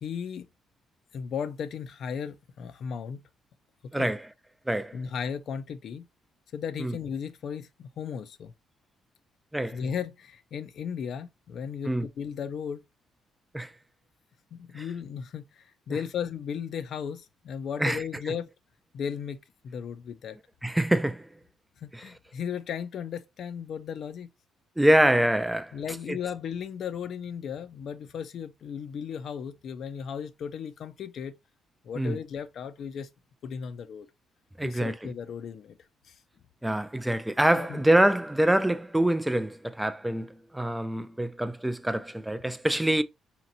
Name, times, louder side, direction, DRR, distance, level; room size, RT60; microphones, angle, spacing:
voice 1, 0.0-0.5 1.1-3.2 4.0-4.1 4.9-6.1 6.5-8.5 9.7-12.8 14.5-18.5 18.9-19.4 19.6-20.4 21.8-24.3 25.7-31.3 31.8-33.1 33.4-34.1 34.6-35.8 36.1-36.2 37.6-37.8, left 7 dB, 65° left, 0.4 m, -35 dB
voice 2, 3.9-4.3 4.7-5.0 6.8-7.0 9.5-9.8 11.9-12.1 13.5-13.7 14.8-14.9 17.8-18.4 20.6-21.3 21.9-22.0 24.8-25.7 26.1-26.2 32.0-32.2 34.6-35.1 36.6-43.0, right 1 dB, 5° right, 0.3 m, -25 dB
5.0 x 2.9 x 2.6 m
cardioid pair, 90°, 0 cm